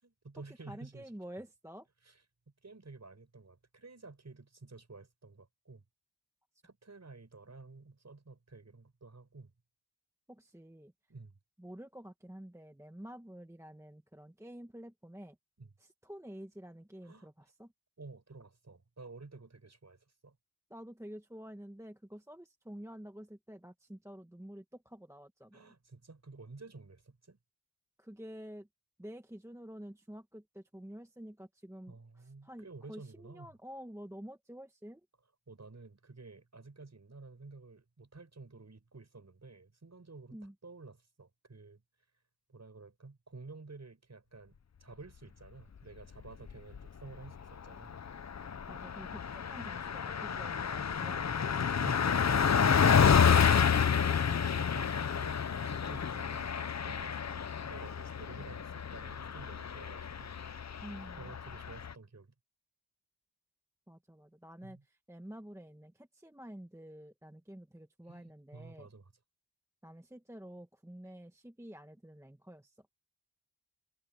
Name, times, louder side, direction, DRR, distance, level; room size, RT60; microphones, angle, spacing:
voice 1, 0.0-1.1 2.0-2.2 2.6-5.8 6.6-9.5 11.1-11.4 15.6-15.7 17.0-17.3 18.0-20.4 25.5-27.4 31.9-33.5 35.5-41.8 42.5-48.0 51.8-60.4 61.2-62.3 64.6-64.8 68.1-69.1, right 3 dB, 35° right, 6.3 m, -52 dB
voice 2, 0.7-1.9 10.3-10.9 11.6-15.4 15.8-17.7 20.7-25.7 28.0-28.7 29.0-35.0 40.3-40.5 48.7-51.8 60.8-61.3 63.9-68.9 69.8-72.7, equal, 5° right, 1.2 m, -49 dB
Car passing by, 46.3-46.9 47.2-47.4 47.7-61.9, left 7 dB, 35° left, 0.7 m, -29 dB
wide cardioid pair, 120°, 47 cm